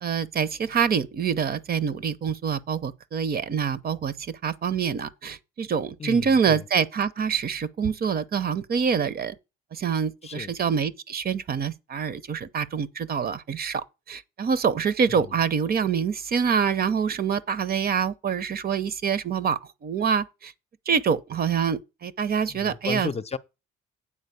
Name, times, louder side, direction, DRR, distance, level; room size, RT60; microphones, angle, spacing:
voice 1, 0.0-9.4 9.7-20.5 20.9-23.1, right 6 dB, 50° right, 0.8 m, -26 dB
voice 2, 6.0-6.7 10.2-10.6 15.0-15.3 22.5-23.4, left 5 dB, 30° left, 0.7 m, -34 dB
8.7 x 4.1 x 6.8 m
cardioid pair, 90°, 20 cm